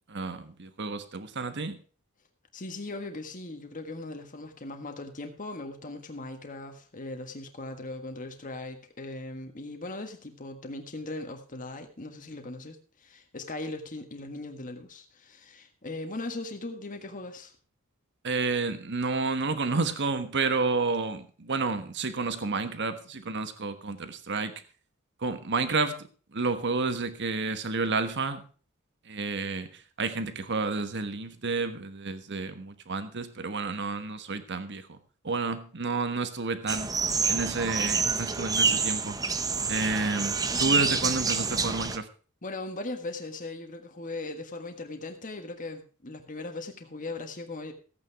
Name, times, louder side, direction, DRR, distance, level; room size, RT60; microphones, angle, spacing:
voice 1, 0.1-1.8 18.2-24.5 25.2-28.4 29.1-35.0 35.2-36.9 37.3-39.2 39.7-42.1, right 3 dB, 50° right, 10 dB, 1.3 m, -30 dB
voice 2, 2.5-17.5 42.4-47.7, left 2 dB, 35° left, 5 dB, 1.5 m, -39 dB
sound 1, 36.7-42.0, right 4 dB, 15° right, 0.7 m, -27 dB
14.5 x 8.7 x 4.7 m, 0.39 s
head